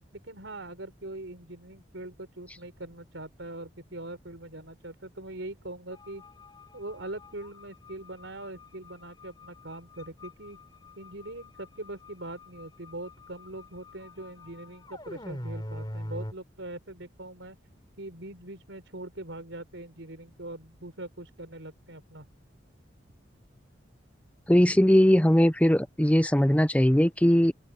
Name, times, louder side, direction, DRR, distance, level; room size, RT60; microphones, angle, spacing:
voice 1, 0.1-6.2 6.7-10.6 11.0-17.6 18.0-22.3, right 2 dB, 85° right, 4.5 m, -42 dB
sound 1, 5.9-16.3, left 1 dB, 25° left, 5.0 m, -44 dB
voice 2, 24.5-27.5, equal, 5° left, 0.7 m, -20 dB
head